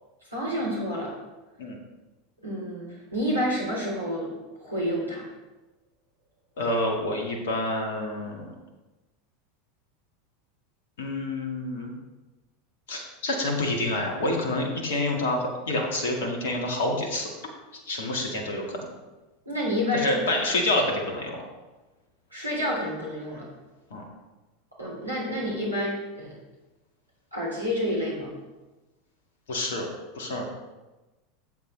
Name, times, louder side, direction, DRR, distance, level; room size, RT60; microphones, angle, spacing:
voice 1, 0.3-1.1 2.4-4.3 4.6-5.2 19.4-20.1 22.3-23.5 24.8-26.3 27.3-28.3, equal, 85° right, -5 dB, 3.5 m, -29 dB
voice 2, 6.6-8.5 11.0-11.9 12.9-17.3 17.7-18.9 19.9-21.4 23.9-24.0 29.5-29.9 30.1-30.4, left 1 dB, 60° left, 1 dB, 1.9 m, -28 dB
13.0 x 7.9 x 3.3 m, 1.1 s
figure-of-eight pair, 80°, 0 cm